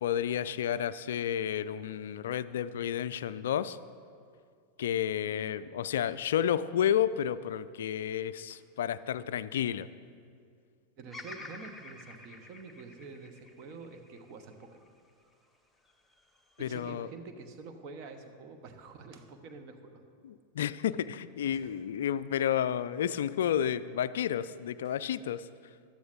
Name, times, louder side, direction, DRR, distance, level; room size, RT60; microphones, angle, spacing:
voice 1, 0.0-3.8 4.8-9.9 16.6-17.1 20.2-25.4, left 9 dB, 60° left, 16 dB, 0.3 m, -31 dB
voice 2, 11.0-14.7 16.6-20.0 21.5-21.8 24.8-25.0, right 4 dB, 40° right, 7 dB, 1.1 m, -47 dB
Bird vocalization bird call bird song, 11.1-15.3 15.9-16.6, left 2 dB, 5° left, 0.9 m, -49 dB
15.5 x 12.0 x 2.6 m, 2.2 s
figure-of-eight pair, 90°, 0 cm